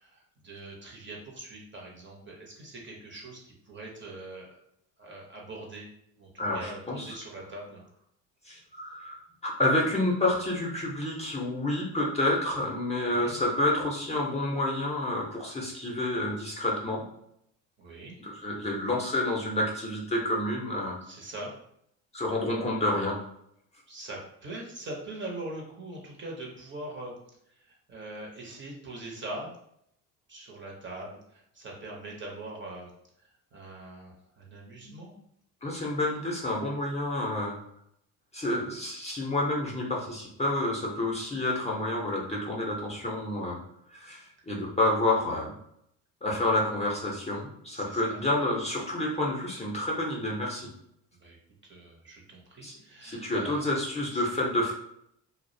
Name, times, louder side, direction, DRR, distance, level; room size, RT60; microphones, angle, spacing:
voice 1, 0.0-4.6 5.0-5.9 6.2-7.8 13.0-13.4 17.8-18.2 21.0-21.5 23.9-27.2 27.5-29.5 30.3-32.9 33.2-35.1 47.7-48.2 51.2-51.4 51.6-53.6 54.1-54.2, right 2 dB, 30° right, -1 dB, 0.7 m, -42 dB
voice 2, 6.4-7.1 8.4-17.0 18.2-21.0 22.1-23.2 35.6-37.6 38.3-43.6 43.9-45.5 46.2-50.7 52.6-52.7 53.0-54.7, left 1 dB, 15° left, -3 dB, 0.6 m, -29 dB
2.4 x 2.0 x 2.6 m, 0.73 s
supercardioid pair, 80°, 38 cm